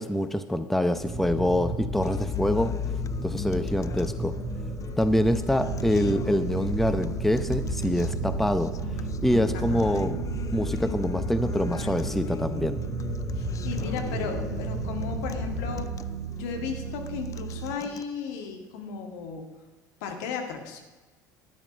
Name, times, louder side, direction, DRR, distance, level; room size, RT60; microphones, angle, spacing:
voice 1, 0.0-2.7 3.2-4.3 5.0-8.7 9.2-10.2 10.5-12.8, equal, ahead, 11 dB, 0.7 m, -25 dB
sound 1, 0.9-16.3, left 1 dB, 20° right, 2.5 m, -33 dB
Acoustic guitar, 2.0-18.0, left 8 dB, 35° left, 0.5 m, -41 dB
sound 2, 5.6-17.8, right 11 dB, 85° right, 0.4 m, -36 dB
voice 2, 9.5-9.9 13.3-15.9 16.3-19.4 20.0-20.8, left 6 dB, 65° left, 4 dB, 1.7 m, -35 dB
12.0 x 10.5 x 5.2 m, 1.2 s
hypercardioid pair, 65°, 10 cm